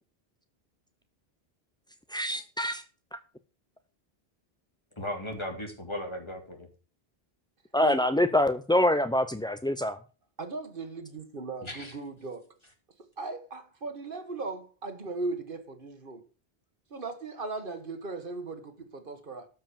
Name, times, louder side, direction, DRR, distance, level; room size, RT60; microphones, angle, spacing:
voice 1, 2.1-2.8 3.1-3.2 7.7-10.0, left 1 dB, 10° left, 0.3 m, -25 dB
voice 2, 5.0-6.7 11.6-11.9, left 1 dB, 25° left, 2.6 m, -36 dB
voice 3, 10.4-12.5 13.2-16.2 16.9-19.5, right 3 dB, 55° right, 1.5 m, -38 dB
12.5 x 5.3 x 7.1 m
omnidirectional pair, 1.1 m